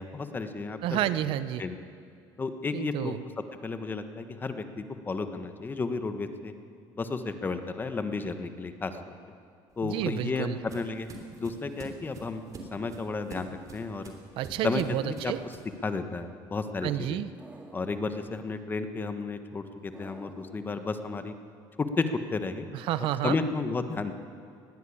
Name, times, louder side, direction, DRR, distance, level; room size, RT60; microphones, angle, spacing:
voice 1, 0.0-1.0 1.6-1.8 2.4-3.1 3.6-6.5 7.0-9.2 9.8-11.1 11.4-12.4 12.7-14.1 14.6-15.5 15.8-17.2 17.7-21.3 21.8-22.7 23.2-24.1, left 4 dB, 20° left, 8 dB, 1.3 m, -32 dB
voice 2, 0.8-1.6 2.7-3.2 9.8-10.6 14.4-15.4 16.8-17.3 22.7-23.4, right 12 dB, 65° right, 13 dB, 0.8 m, -30 dB
sound 1, 9.7-15.8, right 3 dB, 35° right, 3.1 m, -46 dB
sound 2, 17.4-18.3 19.9-20.9, right 2 dB, 15° right, 2.5 m, -49 dB
20.5 x 15.0 x 8.7 m, 2.3 s
cardioid pair, 135°, 10 cm